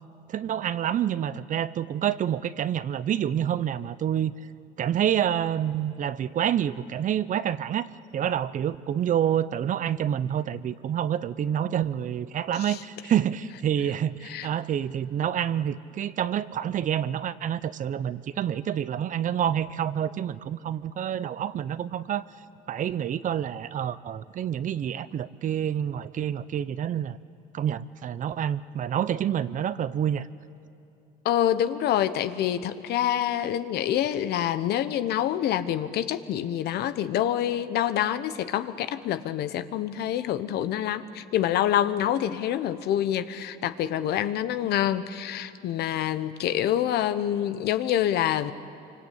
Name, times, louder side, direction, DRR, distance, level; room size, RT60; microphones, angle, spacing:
voice 1, 0.3-4.3 4.8-22.2 22.7-27.2 27.5-30.3, right 9 dB, 50° right, 16 dB, 0.8 m, -28 dB
voice 2, 31.2-48.5, left 11 dB, 75° left, 12 dB, 1.2 m, -26 dB
26.0 x 25.0 x 8.6 m, 2.8 s
cardioid pair, 110°, 17 cm